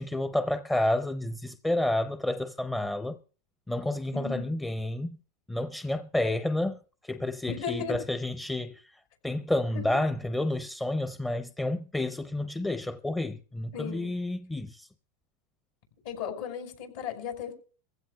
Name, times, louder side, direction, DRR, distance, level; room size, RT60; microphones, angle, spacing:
voice 1, 0.0-3.2 3.7-5.2 5.5-14.9, left 1 dB, 10° left, 0.6 m, -30 dB
voice 2, 4.1-4.5 7.5-8.0 9.7-10.0 13.7-14.1 16.0-17.6, left 7 dB, 75° left, 5.5 m, -36 dB
23.5 x 15.5 x 2.3 m
supercardioid pair, 115°, 0 cm